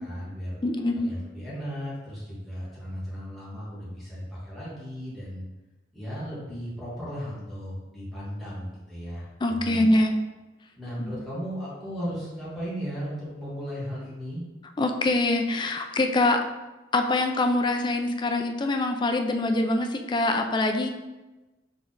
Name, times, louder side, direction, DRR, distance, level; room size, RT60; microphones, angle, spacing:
voice 1, 0.0-0.6 1.0-5.4 5.9-10.0 10.8-14.4, equal, ahead, -10 dB, 1.5 m, -36 dB
voice 2, 0.6-1.1 9.4-10.2 11.0-11.1 14.8-16.4 16.9-20.9, left 2 dB, 25° left, 5 dB, 0.4 m, -24 dB
4.1 x 3.3 x 3.8 m, 1.1 s
head